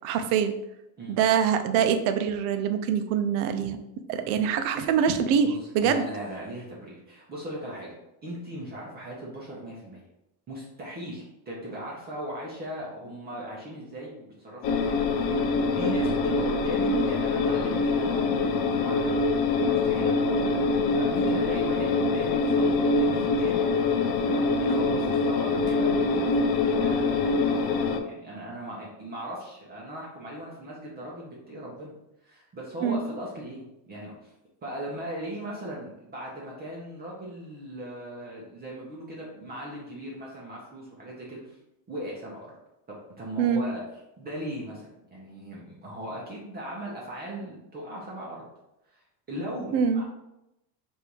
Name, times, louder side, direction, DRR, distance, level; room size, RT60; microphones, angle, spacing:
voice 1, 0.0-0.5 1.1-3.8 4.1-6.0 32.8-33.0 43.4-43.7 49.7-50.0, right 7 dB, 65° right, 8 dB, 0.6 m, -24 dB
voice 2, 5.4-7.9 8.2-10.0 10.5-19.2 19.7-20.7 20.9-23.7 24.2-31.9 32.2-34.3 34.6-41.6 41.9-42.5 42.9-43.8 44.2-48.5 48.9-49.0 49.3-50.0, right 1 dB, 20° right, -5 dB, 0.7 m, -38 dB
sound 1, 14.6-28.0, left 3 dB, 85° left, 0.7 m, -24 dB
3.4 x 2.7 x 4.5 m, 0.89 s
cardioid pair, 155°, 48 cm